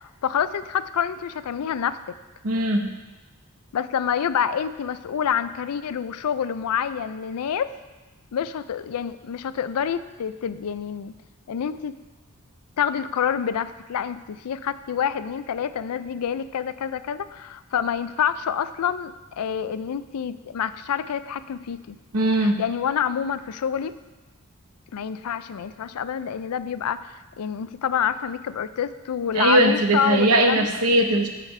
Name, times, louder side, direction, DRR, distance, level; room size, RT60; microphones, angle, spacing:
voice 1, 0.0-2.1 3.7-7.7 8.3-11.1 11.5-12.0 12.8-22.0 22.4-23.9 24.9-30.7, left 8 dB, 90° left, 14 dB, 0.4 m, -27 dB
voice 2, 2.4-2.9 22.1-22.6 29.3-31.3, right 1 dB, 80° right, 4 dB, 1.0 m, -20 dB
14.0 x 5.0 x 3.2 m, 1.1 s
head